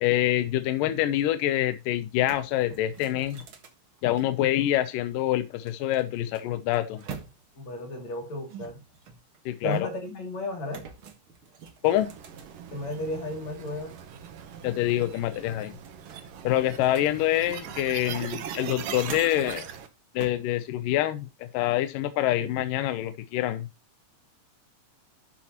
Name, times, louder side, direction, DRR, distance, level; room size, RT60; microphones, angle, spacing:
voice 1, 0.0-3.4 4.0-7.0 9.5-9.8 11.8-12.1 14.6-15.7 16.4-19.7 20.2-23.7, left 13 dB, 80° left, 2.3 m, -26 dB
sound 1, 1.6-1.7 2.0-4.8 5.7-7.7 8.5-10.1 10.7-13.1 13.5-14.6 14.9-15.0 15.4-18.0 18.4-19.5 20.2-20.5, right 6 dB, 45° right, 1.9 m, -46 dB
voice 2, 7.6-8.8 9.6-10.8 12.7-13.9, left 1 dB, 55° left, 3.9 m, -33 dB
sound 2, 11.8-19.9, right 8 dB, 80° right, 3.0 m, -40 dB
13.0 x 8.1 x 3.0 m
omnidirectional pair, 3.9 m